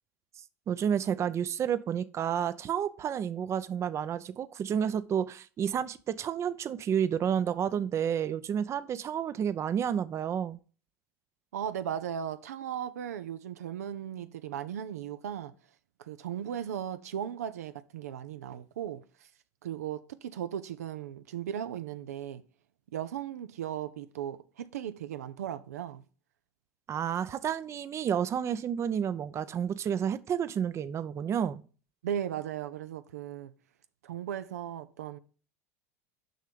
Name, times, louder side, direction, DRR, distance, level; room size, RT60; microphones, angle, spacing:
voice 1, 0.7-10.6 26.9-31.6, right 8 dB, 35° right, 0.6 m, -30 dB
voice 2, 11.5-15.5 16.0-19.0 19.6-22.4 22.9-26.0 32.0-33.5 34.0-35.2, right 9 dB, 85° right, 0.5 m, -37 dB
6.4 x 5.6 x 5.2 m
hypercardioid pair, 85°, 8 cm